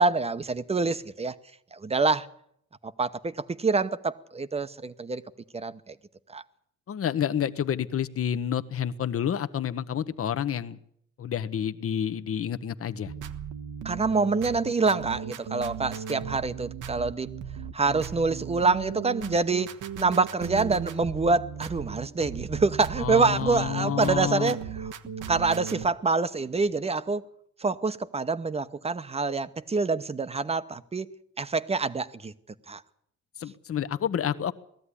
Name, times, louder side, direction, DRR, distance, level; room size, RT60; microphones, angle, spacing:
voice 1, 0.0-1.4 1.7-2.3 3.0-5.2 5.5-5.9 6.3-6.4 13.8-17.3 17.7-19.7 20.0-24.6 25.3-27.2 27.6-31.1 31.4-32.3 32.7-32.8, right 4 dB, 20° right, 0.9 m, -26 dB
voice 2, 6.9-10.8 11.2-13.1 23.0-24.5 33.4-34.5, left 9 dB, 50° left, 1.1 m, -29 dB
sound 1, 13.0-25.9, right 8 dB, 85° right, 1.4 m, -37 dB
19.0 x 14.0 x 9.9 m
cardioid pair, 135°, 30 cm